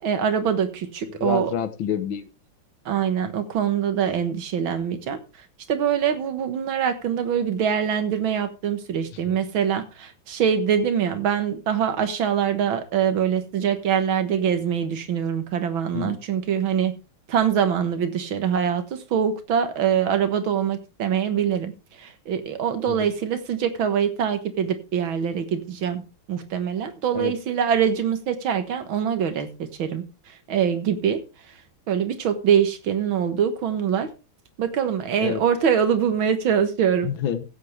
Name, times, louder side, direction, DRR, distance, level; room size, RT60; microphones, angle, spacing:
voice 1, 0.0-1.5 2.9-5.2 5.7-16.9 17.3-26.0 26.3-31.3 31.9-34.1 34.6-37.1, right 8 dB, 80° right, 2.1 m, -24 dB
voice 2, 1.1-2.2 15.9-16.2 22.9-23.1 27.1-27.3 35.2-35.4 37.0-37.4, left 9 dB, 80° left, 1.8 m, -28 dB
15.5 x 8.0 x 3.3 m
omnidirectional pair, 2.2 m